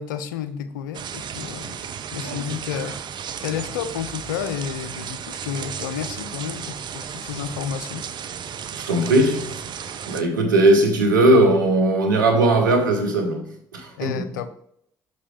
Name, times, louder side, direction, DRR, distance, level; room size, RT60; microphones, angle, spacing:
voice 1, 0.0-1.8 2.1-3.0 3.4-8.1 14.0-14.5, left 8 dB, 85° left, 11 dB, 0.4 m, -31 dB
sound 1, 0.9-10.2, right 8 dB, 50° right, 0.5 m, -34 dB
voice 2, 8.7-9.6 10.1-14.3, right 1 dB, 90° right, 4 dB, 0.8 m, -19 dB
5.7 x 5.3 x 3.3 m, 0.70 s
hypercardioid pair, 50°, 10 cm